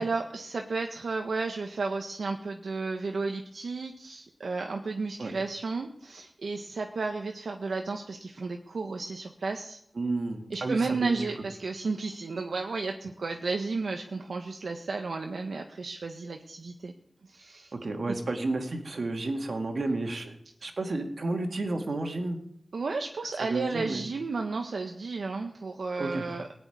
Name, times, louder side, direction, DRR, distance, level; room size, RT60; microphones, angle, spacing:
voice 1, 0.0-9.8 10.5-16.9 17.2-17.7 22.7-26.5, right 4 dB, 80° right, 3 dB, 1.1 m, -33 dB
voice 2, 10.0-11.2 17.7-20.3 20.6-22.4 23.5-24.1 26.0-26.2, right 2 dB, 60° right, 4 dB, 2.4 m, -31 dB
18.0 x 6.9 x 9.4 m, 0.74 s
wide cardioid pair, 70°, 0 cm